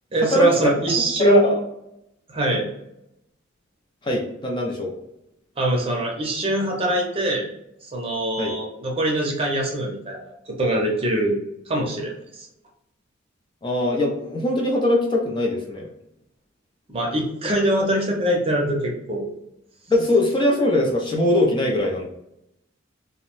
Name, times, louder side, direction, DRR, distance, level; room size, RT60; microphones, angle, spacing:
voice 1, 0.1-1.5 2.3-2.7 5.6-7.5 7.8-11.4 11.7-12.5 16.9-19.4, right 1 dB, 30° right, 0 dB, 0.6 m, -23 dB
voice 2, 1.2-1.6 4.0-4.9 8.4-8.5 13.6-15.9 19.9-22.0, left 2 dB, 25° left, -1 dB, 0.4 m, -21 dB
2.6 x 2.1 x 2.9 m, 0.83 s
head